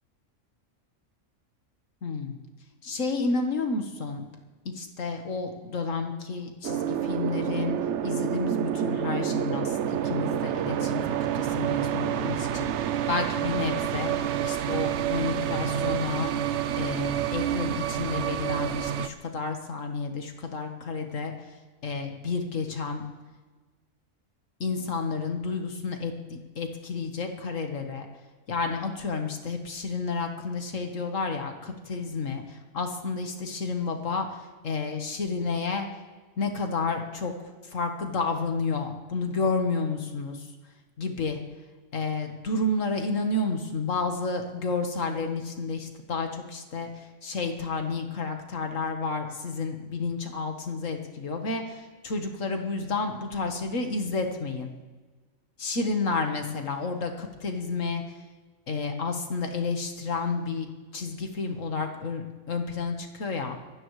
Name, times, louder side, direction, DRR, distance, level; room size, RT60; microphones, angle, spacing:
voice 1, 2.0-2.4 2.8-4.2 4.7-7.8 8.0-11.0 11.3-14.1 14.4-16.3 16.8-21.3 21.8-23.0 24.6-28.1 28.5-35.9 36.4-37.3 37.7-40.4 41.0-41.4 41.9-46.9 47.2-54.7 55.6-58.0 58.7-63.6, left 4 dB, 75° left, 4 dB, 1.8 m, -31 dB
sound 1, 6.6-19.1, right 10 dB, 65° right, 0.9 m, -28 dB
25.5 x 16.0 x 3.2 m, 1.3 s
omnidirectional pair, 1.3 m